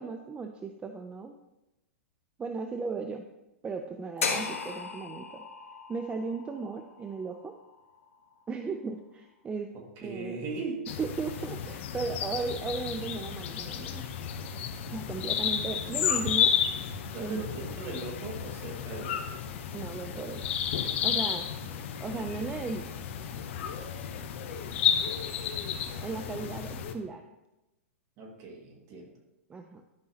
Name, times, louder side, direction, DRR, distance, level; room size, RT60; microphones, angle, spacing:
voice 1, 0.0-1.4 2.4-3.2 3.6-5.4 5.9-7.5 8.5-9.7 10.0-10.4 11.0-14.1 14.9-16.5 17.2-17.4 19.7-20.5 21.0-21.4 22.0-22.9 26.0-27.2 29.5-29.8, right 4 dB, 15° right, 5 dB, 0.5 m, -36 dB
sound 1, 4.2-8.3, left 4 dB, 80° left, 1.3 m, -36 dB
voice 2, 9.7-10.8 17.1-19.2 21.7-22.3 28.2-29.1, right 3 dB, 40° right, 1 dB, 2.0 m, -39 dB
sound 2, 10.9-26.9, left 8 dB, 60° left, 0.9 m, -32 dB
11.5 x 5.5 x 2.9 m, 0.97 s
hypercardioid pair, 120°, 7 cm